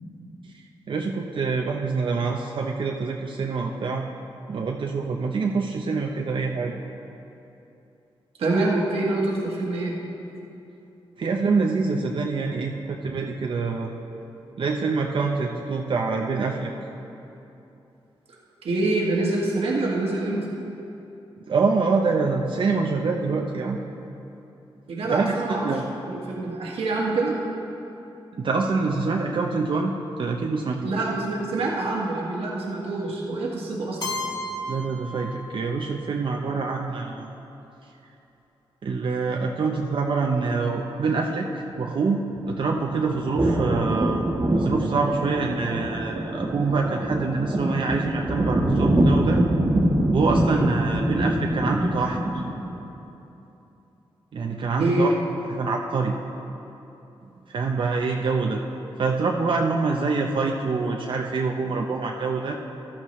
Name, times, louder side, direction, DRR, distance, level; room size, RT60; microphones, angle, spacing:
voice 1, 0.5-4.1 4.5-6.7 11.2-13.9 14.6-16.7 21.5-23.8 25.1-25.8 28.3-29.9 30.2-30.9 34.7-37.3 38.8-44.3 44.6-49.4 50.1-52.4 54.3-55.1 55.5-56.1 57.5-58.6 59.0-62.6, right 4 dB, 60° right, 0 dB, 0.7 m, -25 dB
voice 2, 8.4-9.9 18.6-20.4 24.9-25.7 26.1-27.4 30.8-34.1 54.8-55.1, right 2 dB, 80° right, -3 dB, 1.5 m, -25 dB
Keyboard (musical), 34.0-35.9, left 1 dB, 45° left, 2.4 m, -33 dB
sound 1, 42.3-52.8, right 1 dB, 35° right, 1.5 m, -24 dB
14.5 x 11.5 x 3.2 m, 2.9 s
cardioid pair, 75°, 10 cm